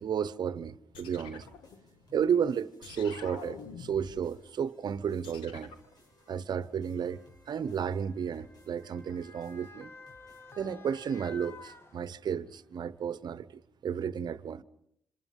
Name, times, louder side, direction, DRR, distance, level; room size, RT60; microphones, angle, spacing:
voice 1, 0.0-1.5 2.1-5.7 6.3-7.2 7.5-9.9 10.6-14.6, right 7 dB, 60° right, 1.0 m, -33 dB
sound 1, 0.9-2.3 2.8-4.4 5.2-5.9, left 6 dB, 85° left, 1.6 m, -47 dB
sound 2, 1.3-12.4, left 2 dB, 55° left, 7.6 m, -64 dB
Motor vehicle (road) / Siren, 2.6-2.7 3.7-3.9 4.9-12.5 13.0-13.1, left 4 dB, 30° left, 2.3 m, -53 dB
27.0 x 26.5 x 5.5 m
supercardioid pair, 50°, 8 cm